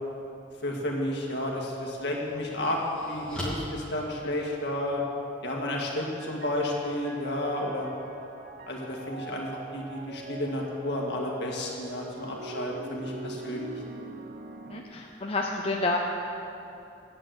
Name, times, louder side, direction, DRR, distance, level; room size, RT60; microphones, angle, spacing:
voice 1, 0.6-2.8 3.1-5.0 5.4-7.9 8.7-13.8, left 1 dB, 65° left, -2 dB, 2.0 m, -32 dB
sound 1, 1.8-4.9, equal, 5° left, 2.4 m, -40 dB
sound 2, 6.0-14.8, right 3 dB, 50° right, 0.9 m, -43 dB
voice 2, 14.7-16.0, left 2 dB, 30° left, 0 dB, 0.7 m, -29 dB
9.4 x 8.7 x 7.8 m, 2.8 s
head